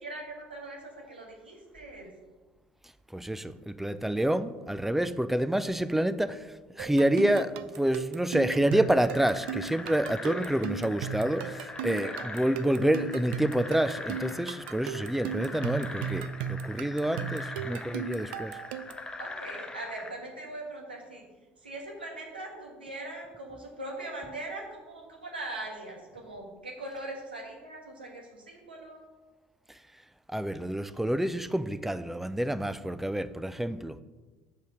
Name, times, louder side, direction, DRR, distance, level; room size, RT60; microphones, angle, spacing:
voice 1, 0.0-2.1 11.8-12.1 19.2-21.2 21.6-29.1, right 2 dB, 85° right, 1.4 m, -41 dB
voice 2, 3.1-6.5 6.8-18.6 30.3-34.0, right 1 dB, 5° right, 0.4 m, -28 dB
sound 1, 6.8-19.1, right 8 dB, 65° right, 0.4 m, -37 dB
sound 2, 8.7-20.1, left 2 dB, 15° left, 1.0 m, -42 dB
6.6 x 5.3 x 6.2 m
figure-of-eight pair, 65°, 5 cm